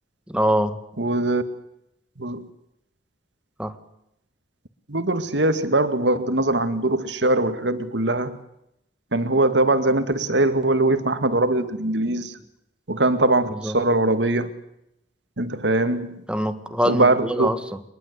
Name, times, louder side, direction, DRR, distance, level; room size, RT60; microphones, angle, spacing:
voice 1, 0.3-0.8 3.6-3.8 13.5-13.8 16.3-17.8, equal, 5° right, 1.8 m, -24 dB
voice 2, 1.0-1.4 2.2-2.4 4.9-8.4 9.1-12.3 12.9-14.5 15.4-16.2 16.9-17.5, right 2 dB, 75° right, 2.1 m, -21 dB
23.5 x 21.0 x 8.3 m
head